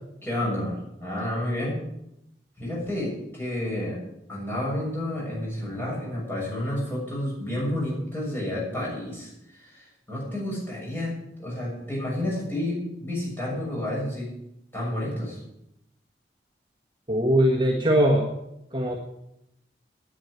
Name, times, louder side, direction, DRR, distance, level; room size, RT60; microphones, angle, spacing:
voice 1, 0.2-1.8 2.6-4.0 4.3-11.1 11.4-14.3 14.7-15.4, left 1 dB, 15° left, -5 dB, 6.7 m, -30 dB
voice 2, 17.1-18.3 18.7-19.0, equal, 25° right, -1 dB, 1.4 m, -21 dB
10.0 x 9.1 x 9.5 m, 0.83 s
head